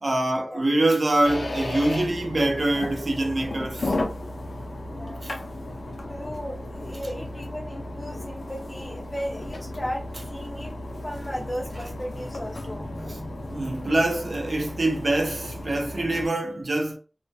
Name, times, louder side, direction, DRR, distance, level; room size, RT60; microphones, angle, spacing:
voice 1, 0.0-4.0 5.2-5.3 13.1-13.2 13.5-17.0, right 2 dB, 70° right, 0.5 m, -24 dB
sound 1, 1.2-16.3, left 1 dB, 90° left, 0.4 m, -34 dB
voice 2, 6.1-13.9, equal, 30° left, 0.4 m, -36 dB
2.2 x 2.1 x 2.6 m
wide cardioid pair, 60°, 0 cm